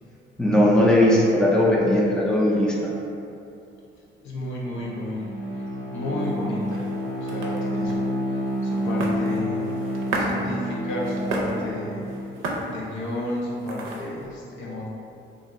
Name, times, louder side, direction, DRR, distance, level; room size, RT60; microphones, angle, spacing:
voice 1, 0.4-2.7, left 1 dB, 5° left, -5 dB, 0.5 m, -18 dB
voice 2, 4.2-5.3 5.6-6.9 7.1-9.7 10.2-12.1 12.7-14.9, left 1 dB, 70° left, -5 dB, 0.7 m, -32 dB
Bowed string instrument, 4.6-12.4, equal, 50° right, 0.7 m, -29 dB
sound 1, 6.2-14.3, right 2 dB, 90° right, 0.5 m, -34 dB
2.5 x 2.4 x 4.0 m, 2.7 s
cardioid pair, 110°, 20 cm